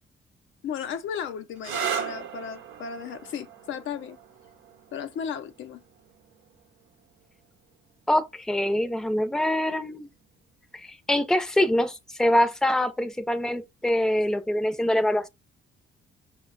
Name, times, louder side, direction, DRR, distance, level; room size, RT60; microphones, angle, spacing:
voice 1, 0.6-4.2 4.9-5.8, left 7 dB, 75° left, 0.6 m, -35 dB
sound 1, 1.6-9.0 10.0-10.5 14.0-14.4, right 7 dB, 90° right, 0.7 m, -38 dB
voice 2, 8.1-10.1 10.7-15.3, left 1 dB, 5° left, 0.6 m, -24 dB
5.5 x 2.2 x 3.8 m
cardioid pair, 90°, 20 cm